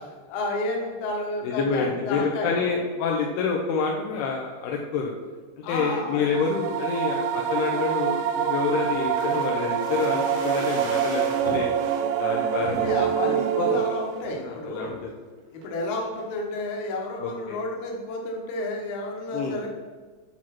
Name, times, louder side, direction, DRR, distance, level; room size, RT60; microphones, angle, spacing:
voice 1, 0.3-2.6 5.6-6.3 12.6-15.0 15.5-19.7, left 2 dB, 60° left, 0 dB, 2.8 m, -31 dB
voice 2, 1.4-5.1 5.7-11.7 12.2-12.9 13.2-13.8 14.4-15.1 17.2-17.6 19.3-19.6, left 5 dB, 80° left, -1 dB, 2.5 m, -28 dB
sound 1, 6.2-14.3, right 8 dB, 90° right, 3.0 m, -26 dB
sound 2, 8.8-12.1 12.6-13.3 13.7-13.8 14.0-14.3 14.8-15.2 15.6-16.3 16.6-16.7, right 2 dB, 70° right, 3.3 m, -39 dB
9.6 x 4.6 x 5.9 m, 1.4 s
omnidirectional pair, 5.2 m